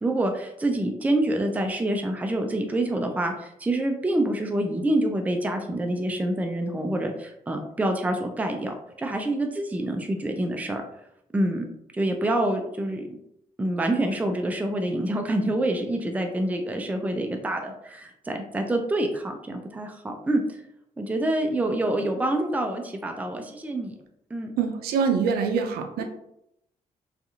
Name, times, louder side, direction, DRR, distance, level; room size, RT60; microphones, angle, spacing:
voice 1, 0.0-10.8 11.3-11.7 11.9-13.2 13.6-20.4 21.0-23.9 24.3-24.5, right 1 dB, 10° right, 4 dB, 0.4 m, -26 dB
voice 2, 24.6-26.0, right 6 dB, 85° right, 5 dB, 0.4 m, -24 dB
2.6 x 2.4 x 2.5 m, 0.79 s
supercardioid pair, 55°, 16 cm